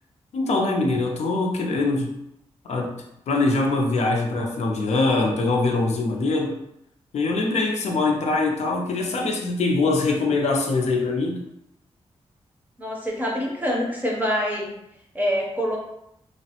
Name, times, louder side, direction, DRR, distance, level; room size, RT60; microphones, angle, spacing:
voice 1, 0.3-2.2 2.6-6.6 7.1-11.4, left 3 dB, 80° left, 0 dB, 0.5 m, -23 dB
voice 2, 12.8-14.7 15.1-15.8, equal, 15° right, -3 dB, 0.6 m, -25 dB
3.0 x 2.0 x 2.8 m, 0.78 s
wide cardioid pair, 120°, 11 cm